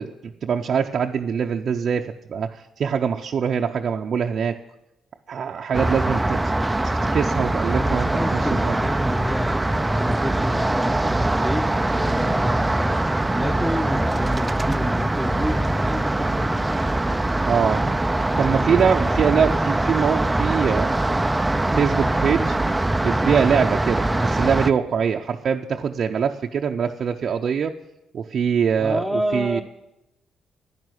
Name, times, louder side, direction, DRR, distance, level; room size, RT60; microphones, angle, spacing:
voice 1, 0.0-4.6 5.3-6.5 6.8-8.8 17.4-18.0 18.4-21.0 21.7-27.7 28.1-29.6, right 7 dB, 55° right, 2 dB, 0.7 m, -23 dB
sound 1, 5.7-24.7, right 1 dB, 10° right, 0.5 m, -22 dB
voice 2, 7.7-13.1 13.3-16.6 18.3-18.8 28.8-29.6, equal, 5° left, 7 dB, 1.1 m, -29 dB
11.0 x 10.5 x 9.3 m, 0.91 s
cardioid pair, 90°, 0 cm